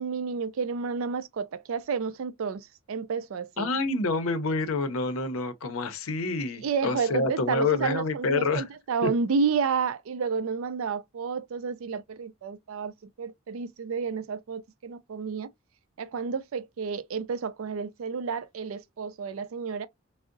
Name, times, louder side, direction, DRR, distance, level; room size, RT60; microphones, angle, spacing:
voice 1, 0.0-3.7 6.6-15.5 16.0-19.9, right 5 dB, 80° right, 0.4 m, -31 dB
voice 2, 3.6-8.6 9.0-9.1, left 3 dB, 80° left, 0.6 m, -27 dB
3.5 x 2.0 x 2.5 m
head